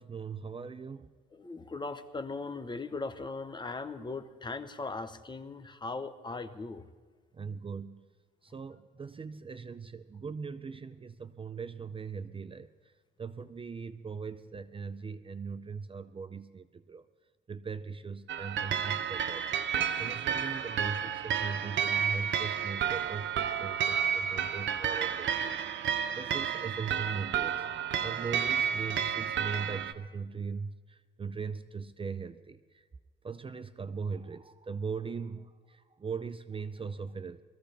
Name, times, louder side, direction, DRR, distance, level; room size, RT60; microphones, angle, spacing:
voice 1, 0.0-1.1 7.3-8.2 8.4-12.7 13.2-17.0 17.5-32.8 33.2-37.4, right 5 dB, 25° right, 12 dB, 0.5 m, -40 dB
voice 2, 1.3-6.8, left 3 dB, 20° left, 9 dB, 1.0 m, -39 dB
sound 1, 18.3-29.9, right 8 dB, 70° right, 0.9 m, -31 dB
22.0 x 14.5 x 3.4 m, 1.4 s
cardioid pair, 90°, 20 cm